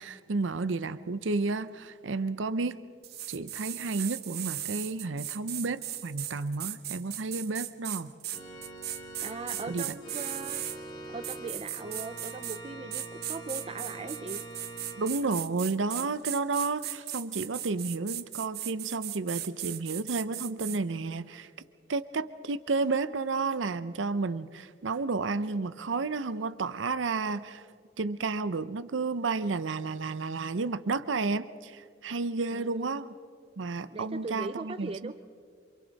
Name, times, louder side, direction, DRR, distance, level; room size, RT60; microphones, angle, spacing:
voice 1, 0.0-2.8 3.3-8.1 9.7-9.9 15.0-21.5 21.9-27.6 28.0-33.1 33.6-35.1, right 3 dB, 85° right, 14 dB, 0.7 m, -31 dB
sound 1, 3.0-10.8 11.2-12.6 12.9-20.8, right 12 dB, 55° right, 0.9 m, -37 dB
Organ, 8.3-15.1, right 1 dB, 25° left, 5.2 m, -44 dB
voice 2, 9.2-10.6 11.1-14.4 32.5-33.0 33.9-35.1, right 3 dB, 30° right, 10 dB, 0.5 m, -39 dB
28.0 x 26.0 x 4.1 m, 2.1 s
head